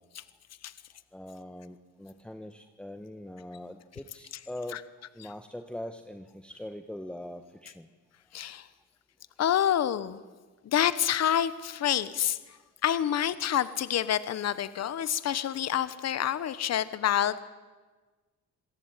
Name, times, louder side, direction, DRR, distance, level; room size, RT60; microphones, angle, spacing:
voice 1, 1.1-4.8 5.1-7.9, left 1 dB, 5° left, 7 dB, 1.3 m, -42 dB
voice 2, 8.3-8.7 9.4-10.2 10.6-12.6 12.8-17.4, left 10 dB, 60° left, 15 dB, 1.1 m, -27 dB
26.5 x 17.5 x 8.9 m, 1.3 s
cardioid pair, 90°, 30 cm